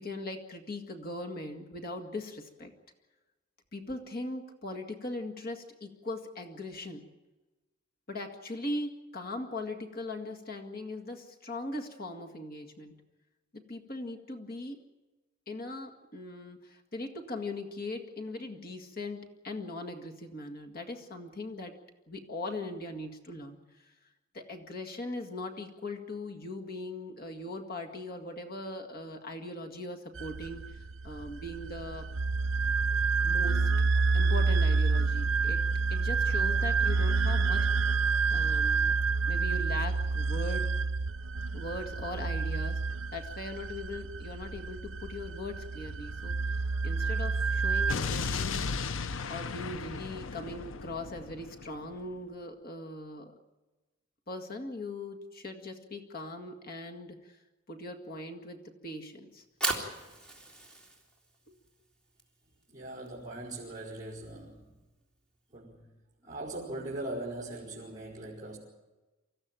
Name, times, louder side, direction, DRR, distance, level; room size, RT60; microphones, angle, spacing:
voice 1, 0.0-2.7 3.7-7.1 8.1-13.0 13.5-14.9 15.5-21.8 22.1-23.9 24.3-32.1 33.2-33.7 34.1-35.6 35.9-37.7 38.3-39.0 39.3-40.7 41.5-46.6 46.8-48.6 49.3-53.4 54.3-57.4 57.7-59.4, left 2 dB, 50° left, 4 dB, 2.0 m, -40 dB
sound 1, 30.2-47.9, right 4 dB, 85° right, 0.8 m, -28 dB
Explosion, 47.9-51.9, left 4 dB, 80° left, 0.7 m, -35 dB
Fire, 59.3-65.5, right 2 dB, 5° left, 3.7 m, -40 dB
voice 2, 62.7-64.8 65.5-65.9 66.2-68.6, right 1 dB, 20° right, -5 dB, 4.8 m, -40 dB
25.0 x 15.0 x 9.0 m, 1.1 s
head